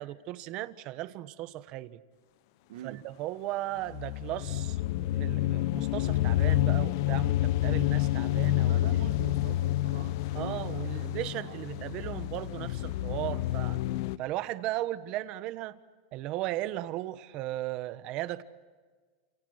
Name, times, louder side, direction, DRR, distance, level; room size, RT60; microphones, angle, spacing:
voice 1, 0.0-2.0 2.8-4.8 5.1-8.8 10.3-13.8 14.2-15.8 16.1-18.4, right 15 dB, 40° right, 12 dB, 1.3 m, -36 dB
voice 2, 2.7-3.1 8.6-12.0, right 12 dB, 75° right, 6 dB, 1.6 m, -45 dB
sound 1, 3.9-14.2, left 15 dB, 55° left, 0.7 m, -29 dB
29.0 x 28.5 x 6.6 m, 1.5 s
supercardioid pair, 150°, 2 cm